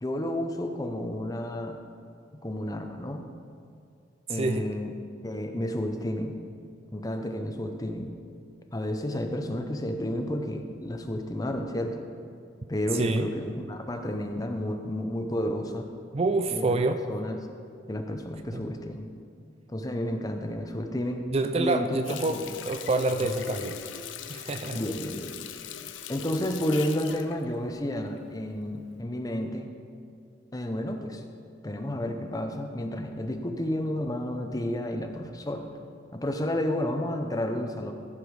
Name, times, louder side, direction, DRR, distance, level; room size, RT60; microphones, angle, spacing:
voice 1, 0.0-1.8 2.4-3.2 4.3-4.9 5.2-6.3 6.9-8.1 8.7-12.0 12.7-15.9 16.5-16.7 17.1-17.4 17.9-19.1 19.7-21.2 21.6-21.9 22.3-22.4 24.7-25.3 26.1-29.7 30.5-31.2 31.6-35.7 36.1-37.9, left 1 dB, 20° left, 5 dB, 0.6 m, -31 dB
voice 2, 4.3-4.7 12.9-13.3 16.1-17.0 18.5-18.6 21.3-23.8 24.3-24.8, right 2 dB, 30° right, 8 dB, 0.4 m, -27 dB
Water tap faucet, 22.0-28.4 28.8-29.0, left 9 dB, 80° left, 0.5 m, -41 dB
14.5 x 5.2 x 4.8 m, 2.4 s
head